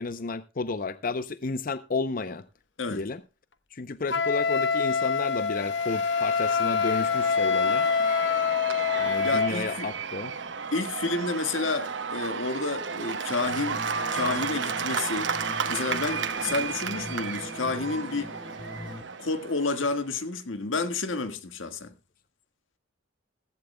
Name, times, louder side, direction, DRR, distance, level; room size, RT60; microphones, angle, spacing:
voice 1, 0.0-2.4 2.9-3.2 3.7-7.9 9.0-10.3, left 3 dB, 45° left, 0.6 m, -32 dB
Wind instrument woodwind instrument, 4.1-9.5, left 5 dB, 65° left, 0.9 m, -25 dB
Cheering / Applause / Crowd, 5.3-20.1, right 5 dB, 65° right, 1.0 m, -33 dB
voice 2, 9.2-9.9 10.7-13.8 14.1-15.3 15.7-18.3 19.2-21.9, left 3 dB, 85° left, 1.6 m, -30 dB
sound 1, 13.5-19.0, left 1 dB, 20° left, 1.3 m, -42 dB
15.5 x 15.0 x 2.2 m
head